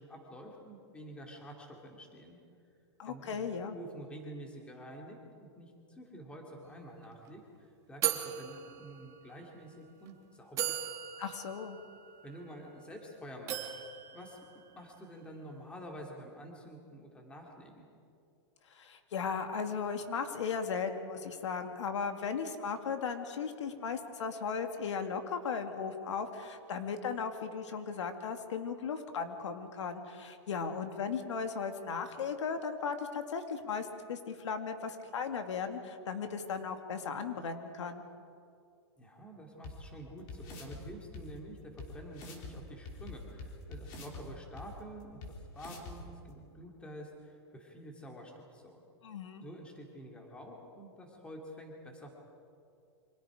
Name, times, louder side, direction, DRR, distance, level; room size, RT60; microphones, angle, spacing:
voice 1, 0.0-2.4 3.1-3.5 3.7-10.8 12.2-13.7 14.1-17.9 39.0-48.8 49.4-52.1, equal, 5° left, 1 dB, 2.7 m, -49 dB
voice 2, 3.0-3.8 11.2-11.8 18.7-38.0 49.0-49.4, left 6 dB, 85° left, 6 dB, 2.4 m, -36 dB
sound 1, 6.7-6.8 7.0-7.3 8.0-9.4 10.1-10.2 10.6-13.0 13.5-15.1, right 11 dB, 20° right, 1.4 m, -38 dB
sound 2, 39.6-39.7 40.3-40.8 41.1-41.2 41.8-41.9 42.1-42.5 42.8-44.2 44.6-44.7 45.2-45.3 45.6-45.9, left 3 dB, 30° left, 3.4 m, -44 dB
29.0 x 25.5 x 5.0 m, 2.4 s
supercardioid pair, 170°, 15 cm